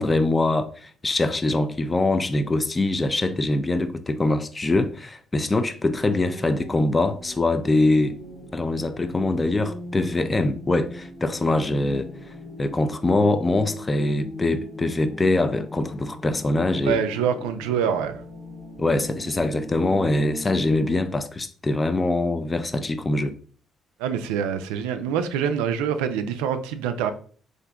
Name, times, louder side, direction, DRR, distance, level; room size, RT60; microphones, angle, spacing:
voice 1, 0.0-8.2 8.5-12.3 12.6-17.0 18.8-23.4, left 2 dB, 25° left, 0.3 m, -23 dB
sound 1, 6.1-21.0, left 1 dB, 45° left, 1.2 m, -39 dB
voice 2, 16.8-18.2 24.0-27.1, right 8 dB, 90° right, 0.3 m, -25 dB
3.6 x 2.5 x 2.2 m
supercardioid pair, 65°, 0 cm